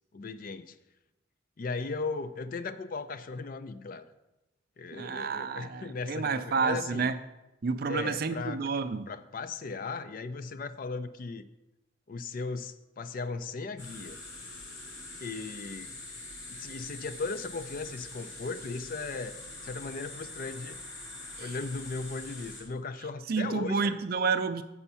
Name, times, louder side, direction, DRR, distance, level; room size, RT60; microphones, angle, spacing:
voice 1, 0.1-0.8 1.6-4.1 4.8-7.1 7.9-8.6 9.1-11.5 12.1-14.2 15.2-16.0 16.5-19.4 19.6-20.8 21.4-23.9, left 4 dB, 50° left, 12 dB, 0.4 m, -37 dB
voice 2, 4.9-7.1 7.6-9.1 21.4-21.5 23.3-24.6, right 5 dB, 55° right, 11 dB, 0.4 m, -30 dB
sound 1, 13.8-22.6, left 2 dB, 90° left, 2.3 m, -44 dB
7.0 x 5.5 x 5.6 m, 0.99 s
head